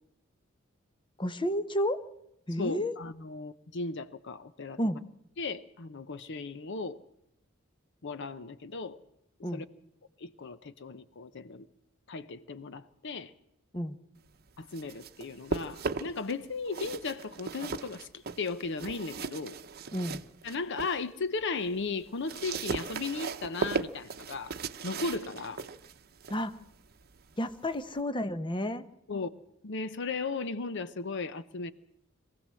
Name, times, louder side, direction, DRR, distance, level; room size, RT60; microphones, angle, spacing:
voice 1, 1.2-2.0 2.5-3.0 4.8-5.0 9.4-9.6 13.7-14.0 19.9-20.2 26.3-26.5 27.4-28.8, equal, 25° left, 0.9 m, -31 dB
voice 2, 2.6-4.8 5.4-7.0 8.0-9.0 9.5-9.6 10.2-11.7 12.1-13.3 14.6-18.1 18.4-19.6 20.4-24.5 24.8-25.6 29.1-29.3 29.6-31.7, left 4 dB, 60° left, 0.7 m, -36 dB
sound 1, 14.5-16.3 16.6-21.0 21.4-28.0, right 4 dB, 50° right, 0.8 m, -38 dB
23.0 x 15.5 x 7.5 m
head